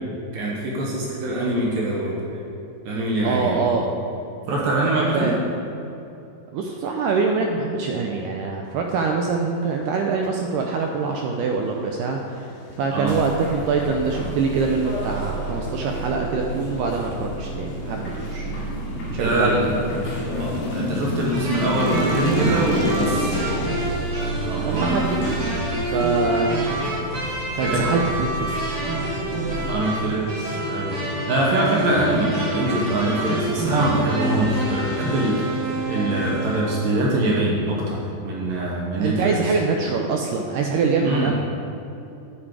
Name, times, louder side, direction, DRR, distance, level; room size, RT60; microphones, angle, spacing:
voice 1, 0.3-2.3 2.9-3.7 4.5-5.3 12.9-13.2 19.1-19.7 20.4-23.4 24.4-25.0 27.6-28.0 29.6-31.0 31.3-35.5 35.9-39.4 41.0-41.3, right 1 dB, 70° right, -3 dB, 2.6 m, -23 dB
voice 2, 3.2-3.9 5.1-5.4 6.5-18.5 19.1-19.8 24.5-26.6 27.5-29.1 39.0-41.4, right 4 dB, 85° right, 2 dB, 1.8 m, -24 dB
motorcycle passing on street, 11.3-28.1, left 2 dB, 75° left, 1.7 m, -33 dB
sound 1, 13.0-29.7, right 2 dB, 50° left, 2.9 m, -33 dB
sound 2, 21.3-36.6, right 1 dB, 55° right, 1.7 m, -27 dB
8.7 x 7.4 x 4.7 m, 2.7 s
omnidirectional pair, 4.4 m